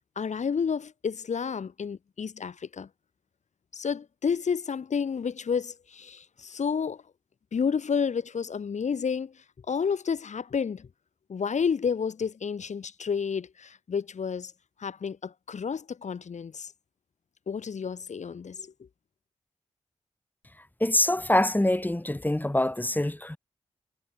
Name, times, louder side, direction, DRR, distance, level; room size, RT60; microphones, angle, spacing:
voice 1, 0.2-2.9 3.7-7.0 7.5-10.9 11.3-14.5 14.8-16.7 17.5-18.7, left 6 dB, 80° left, 6.8 m, -30 dB
voice 2, 20.8-23.4, left 1 dB, 15° left, 3.2 m, -25 dB
cardioid pair, 50°, 12 cm